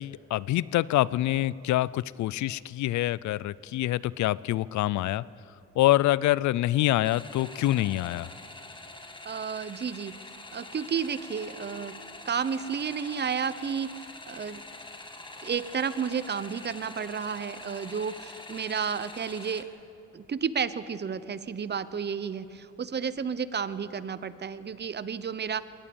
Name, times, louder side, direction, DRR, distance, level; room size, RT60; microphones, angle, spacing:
voice 1, 0.0-5.2 5.8-8.3, left 15 dB, 70° left, 21 dB, 0.5 m, -26 dB
sound 1, 7.0-19.6, left 2 dB, 15° left, 1.7 m, -45 dB
voice 2, 9.2-10.2 10.5-11.9 12.2-14.6 15.4-19.7 20.1-25.6, right 6 dB, 35° right, 15 dB, 0.7 m, -32 dB
22.0 x 18.0 x 7.0 m, 2.8 s
cardioid pair, 90°, 30 cm